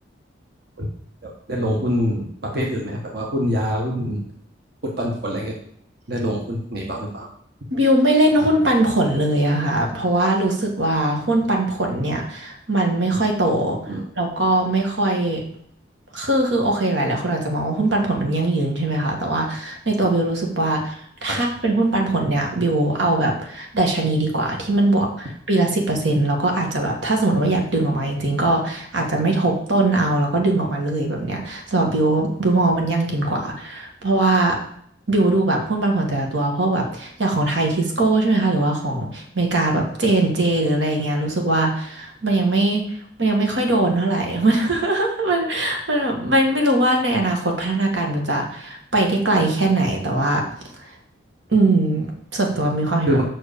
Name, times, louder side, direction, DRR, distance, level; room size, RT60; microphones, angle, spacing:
voice 1, 1.2-4.2 4.8-5.5 6.1-7.3 13.9-14.0 21.3-21.4 53.1-53.2, equal, 55° right, -1 dB, 1.4 m, -25 dB
voice 2, 7.7-13.8 14.2-15.4 16.1-20.9 21.2-34.6 35.1-42.8 43.2-50.4 51.5-53.2, right 2 dB, 80° right, 1 dB, 1.7 m, -21 dB
6.0 x 4.9 x 6.7 m, 0.66 s
head